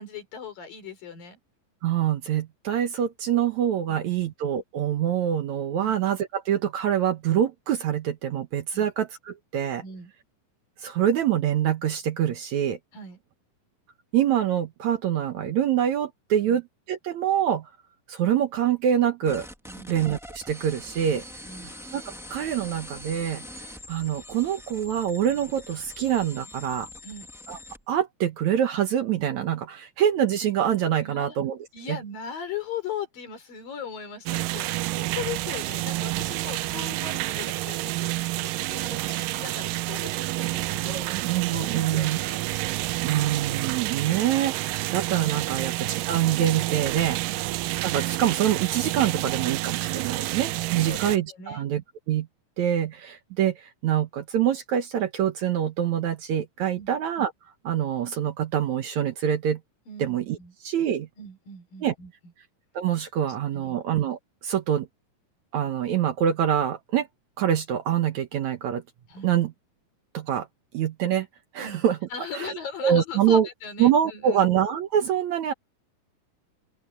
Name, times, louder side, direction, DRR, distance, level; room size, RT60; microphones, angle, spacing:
voice 1, 0.0-1.4 3.9-4.2 5.8-5.9 8.7-8.9 9.8-10.1 12.9-13.2 16.4-16.6 19.7-19.9 21.4-21.7 27.0-27.3 31.0-31.4 31.7-41.1 41.5-42.5 45.5-45.7 47.2-47.4 50.3-50.4 50.8-51.7 56.7-56.9 59.9-60.5 61.2-62.1 63.5-63.8 69.1-69.3 71.6-71.9 72.1-74.5, left 6 dB, 90° left, 6.4 m, -39 dB
voice 2, 1.8-9.8 10.8-12.8 14.1-16.6 16.9-17.7 18.1-19.5 19.9-21.2 21.9-22.0 22.3-23.4 23.9-26.9 27.5-27.6 27.9-31.6 31.9-32.0 40.1-40.3 40.9-42.2 43.0-47.2 47.8-51.8 52.1-52.3 52.6-57.3 57.6-59.6 60.0-61.1 61.8-61.9 62.8-64.9 65.5-67.1 67.4-68.8 69.2-69.5 70.1-70.5 70.7-71.3 71.5-72.0 72.3-72.5 72.8-73.5 73.8-75.5, right 10 dB, 65° right, 2.3 m, -25 dB
sound 1, 19.2-27.8, left 1 dB, 5° right, 0.4 m, -43 dB
sound 2, 34.3-51.2, right 19 dB, 80° right, 2.2 m, -29 dB
open air
omnidirectional pair, 3.9 m